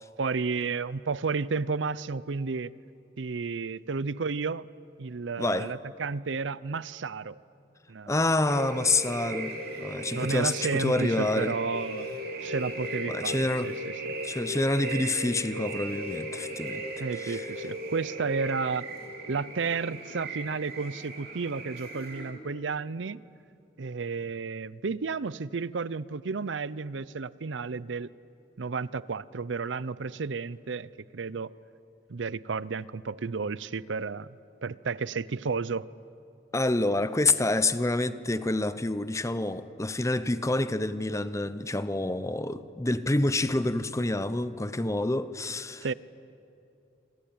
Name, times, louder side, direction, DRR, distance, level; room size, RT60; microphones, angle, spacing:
voice 1, 0.0-2.7 3.2-4.7 5.0-7.4 7.9-8.1 10.1-13.9 17.0-18.9 19.3-23.2 23.8-28.1 28.6-31.5 32.1-34.3 34.6-35.9 45.8-45.9, right 4 dB, 90° right, 0.6 m, -32 dB
voice 2, 5.4-5.7 8.1-11.6 13.0-13.7 14.2-16.8 17.2-17.5 36.5-45.9, left 2 dB, 15° left, 0.8 m, -28 dB
sound 1, 8.5-22.3, right 1 dB, 55° right, 4.0 m, -37 dB
26.5 x 25.5 x 8.8 m
head